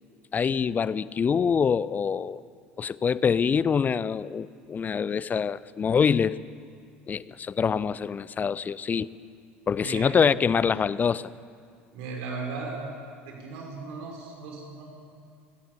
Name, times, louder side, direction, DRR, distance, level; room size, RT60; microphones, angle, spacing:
voice 1, 0.3-2.4 2.8-6.4 7.1-9.1 9.7-11.3, left 6 dB, 25° left, 19 dB, 0.6 m, -25 dB
voice 2, 9.8-10.1 11.9-12.8 13.2-14.8, right 4 dB, 60° right, 0 dB, 6.1 m, -36 dB
29.0 x 18.0 x 7.2 m, 2.2 s
figure-of-eight pair, 65°, 6 cm